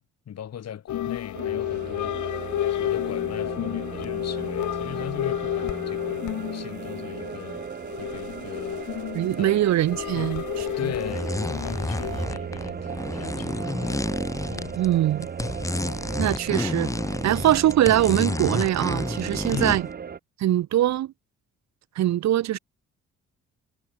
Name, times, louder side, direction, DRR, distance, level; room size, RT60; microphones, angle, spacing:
voice 1, 0.0-2.4 2.7-7.6 8.0-8.8 9.4-9.7 10.1-10.5 10.8-14.2 14.5-14.8 19.5-19.8, left 9 dB, 55° left, 2.3 m, -39 dB
sound 1, 0.9-12.3, left 13 dB, 75° left, 2.5 m, -31 dB
sound 2, 1.3-20.2, right 7 dB, 30° right, 0.8 m, -36 dB
voice 2, 9.1-10.4 10.8-10.9 14.7-15.3 16.2-16.9 17.2-19.9 20.4-21.1 22.0-22.6, right 13 dB, 65° right, 0.8 m, -22 dB
sound 3, 10.6-10.7 11.0-14.9 15.2-19.9, left 2 dB, 10° left, 1.4 m, -30 dB
cardioid pair, 90°, 30 cm